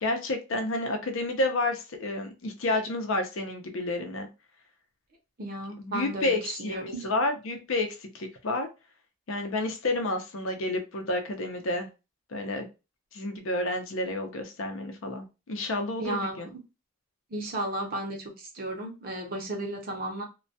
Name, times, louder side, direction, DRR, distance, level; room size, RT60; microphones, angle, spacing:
voice 1, 0.0-4.3 5.8-8.7 9.3-11.9 12.3-12.7 13.1-16.5, left 2 dB, 70° left, 0.6 m, -30 dB
voice 2, 5.4-7.1 16.0-16.5 17.3-20.2, right 1 dB, 45° right, 0.6 m, -34 dB
2.2 x 2.2 x 2.6 m
head